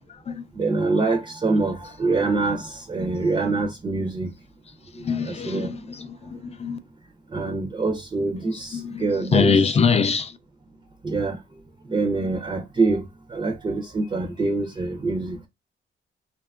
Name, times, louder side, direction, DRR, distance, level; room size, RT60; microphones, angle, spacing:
voice 1, 0.5-4.3 5.2-5.9 7.3-9.7 11.0-11.4 11.9-13.0 13.3-15.4, right 3 dB, 25° right, 0.5 m, -25 dB
voice 2, 5.0-5.7 6.2-6.8 8.7-9.0 9.3-10.3, left 5 dB, 35° left, 0.4 m, -22 dB
2.8 x 2.3 x 2.2 m
cardioid pair, 95°, 20 cm